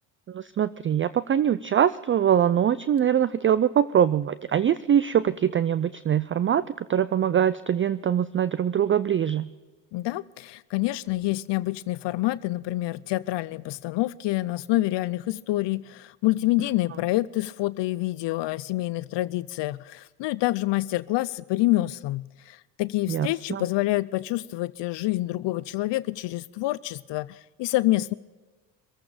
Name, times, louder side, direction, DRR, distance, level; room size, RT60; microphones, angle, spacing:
voice 1, 0.3-9.5 23.1-23.7, right 9 dB, 25° right, 0.4 m, -23 dB
voice 2, 9.9-28.1, left 17 dB, 60° left, 0.6 m, -27 dB
23.5 x 8.4 x 5.0 m
supercardioid pair, 65°, 49 cm